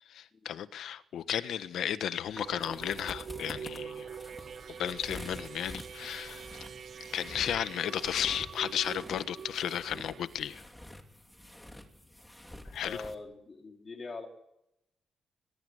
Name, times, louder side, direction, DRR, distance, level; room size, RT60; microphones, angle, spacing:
voice 1, 0.1-4.0 4.8-6.4 7.1-10.6 12.7-13.0, left 9 dB, 80° left, 1.3 m, -34 dB
sound 1, 2.3-13.1, left 1 dB, 5° left, 2.7 m, -48 dB
sound 2, 2.4-10.2, right 7 dB, 45° right, 0.9 m, -45 dB
voice 2, 12.8-14.3, left 3 dB, 30° left, 4.0 m, -42 dB
23.0 x 21.0 x 8.1 m
wide cardioid pair, 155°, 0 cm